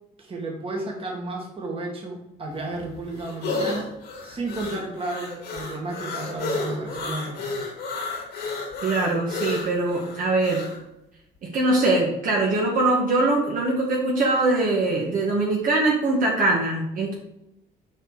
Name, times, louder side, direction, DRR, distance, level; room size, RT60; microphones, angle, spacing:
voice 1, 0.2-3.9 4.2-7.6, right 2 dB, 35° right, -1 dB, 2.0 m, -32 dB
sound 1, 2.5-10.8, left 3 dB, 75° left, 2.6 m, -32 dB
voice 2, 8.8-10.6 11.5-17.1, right 2 dB, 55° right, -2 dB, 1.7 m, -22 dB
6.5 x 5.0 x 4.0 m, 0.87 s
cardioid pair, 110°, 17 cm